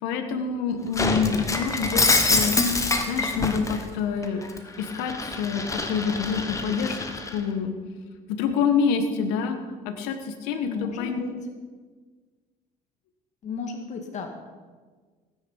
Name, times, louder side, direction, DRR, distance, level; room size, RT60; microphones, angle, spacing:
voice 1, 0.0-2.6 3.1-4.4 4.8-7.0 7.3-7.7 8.3-9.6 9.8-11.2, left 6 dB, 85° left, 6 dB, 1.6 m, -27 dB
Shatter, 0.9-3.8 4.2-7.4, left 3 dB, 20° left, 1.6 m, -25 dB
voice 2, 10.6-11.3 13.4-14.3, left 5 dB, 50° left, 4 dB, 2.0 m, -34 dB
17.0 x 9.9 x 5.6 m, 1.5 s
cardioid pair, 105°, 16 cm